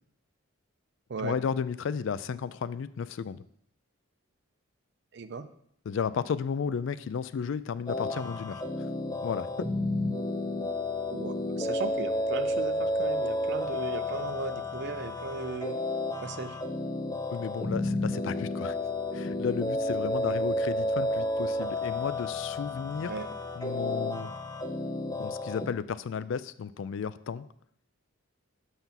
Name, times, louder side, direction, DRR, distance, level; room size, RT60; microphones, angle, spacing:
voice 1, 1.2-3.4 5.9-8.6 9.2-9.5 17.3-18.8 19.1-23.2 23.6-24.3 25.2-27.5, left 6 dB, 60° left, 15 dB, 0.3 m, -33 dB
voice 2, 5.1-5.5 11.1-15.8 16.2-16.6 20.2-20.3 23.0-23.3, right 4 dB, 55° right, 11 dB, 0.5 m, -37 dB
sound 1, 7.9-25.7, left 1 dB, 20° left, 0.7 m, -31 dB
5.9 x 5.6 x 5.7 m, 0.70 s
head